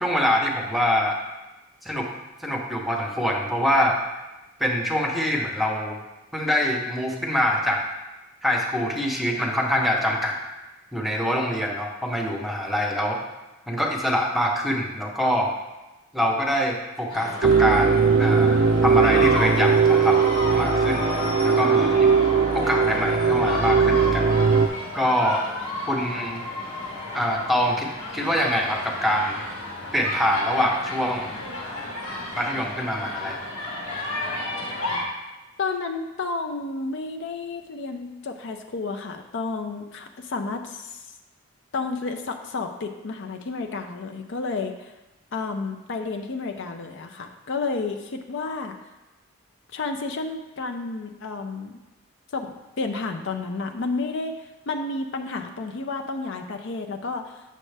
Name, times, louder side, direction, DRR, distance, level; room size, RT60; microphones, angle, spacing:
voice 1, 0.0-1.2 1.8-2.1 2.4-4.0 4.6-6.0 6.3-7.8 8.4-10.4 10.9-13.2 13.7-15.5 16.1-20.3 20.5-21.0 21.4-22.1 22.5-24.3 24.9-25.4 25.9-26.4 27.1-27.9 28.1-29.4 29.9-31.4 32.3-33.4, equal, ahead, 0 dB, 0.7 m, -24 dB
sound 1, 17.1-35.0, left 2 dB, 90° left, 1.6 m, -32 dB
sound 2, 17.4-24.7, right 5 dB, 50° right, 0.4 m, -19 dB
voice 2, 35.6-41.0 41.7-44.9 45.3-48.8 49.7-51.8 52.3-57.4, left 3 dB, 55° left, 4 dB, 0.5 m, -31 dB
7.5 x 6.3 x 3.3 m, 1.0 s
head